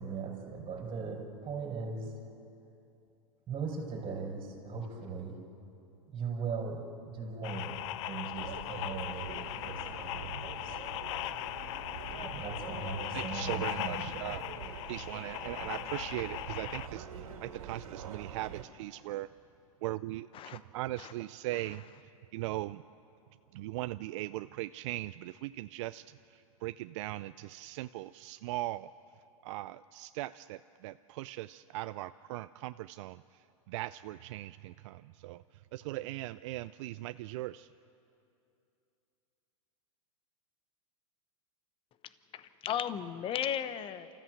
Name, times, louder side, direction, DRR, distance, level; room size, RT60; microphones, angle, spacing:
voice 1, 0.0-2.3 3.5-5.4 6.1-10.8 11.2-11.3 12.2-14.2, right 4 dB, 30° right, -1 dB, 5.4 m, -39 dB
sound 1, 7.4-16.9, left 15 dB, 60° left, 0.6 m, -39 dB
sound 2, 8.3-18.6, right 7 dB, 80° right, 2.5 m, -45 dB
voice 2, 13.1-14.4 14.9-17.1 17.4-19.3 19.8-20.3 20.5-21.8 22.3-22.8 23.5-26.0 26.6-28.9 29.4-33.2 33.7-35.4 35.7-37.7, right 17 dB, 60° right, 13 dB, 0.4 m, -39 dB
voice 3, 21.5-21.9 42.3-44.1, left 9 dB, 30° left, 13 dB, 1.0 m, -36 dB
28.5 x 14.0 x 7.8 m, 2.7 s
hypercardioid pair, 115°, 18 cm